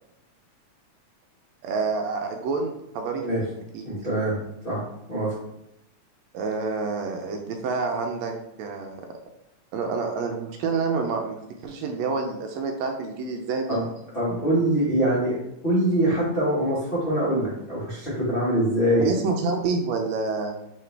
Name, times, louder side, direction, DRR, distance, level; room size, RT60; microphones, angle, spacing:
voice 1, 1.6-3.2 3.7-3.8 6.3-8.3 8.6-9.1 9.7-13.8 19.0-20.6, right 4 dB, 80° right, 3 dB, 1.7 m, -28 dB
voice 2, 3.8-4.4 4.6-5.4 13.7-13.9 14.1-19.1, right 1 dB, 75° left, -10 dB, 0.5 m, -24 dB
3.8 x 3.8 x 3.3 m, 0.85 s
omnidirectional pair, 3.3 m